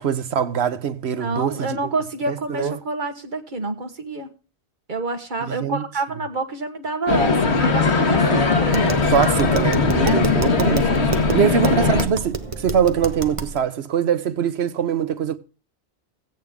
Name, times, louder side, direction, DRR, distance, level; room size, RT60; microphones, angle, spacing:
voice 1, 0.0-1.9 2.3-2.7 5.5-5.8 9.1-15.4, right 7 dB, 75° right, 1.1 m, -23 dB
voice 2, 1.2-4.3 4.9-9.0 10.1-10.3 11.3-11.9, right 3 dB, 50° right, 1.6 m, -28 dB
sound 1, 7.1-12.1, left 4 dB, 85° left, 1.8 m, -19 dB
Tap, 8.6-13.6, right 3 dB, 30° right, 1.1 m, -30 dB
15.5 x 9.1 x 3.6 m
omnidirectional pair, 1.1 m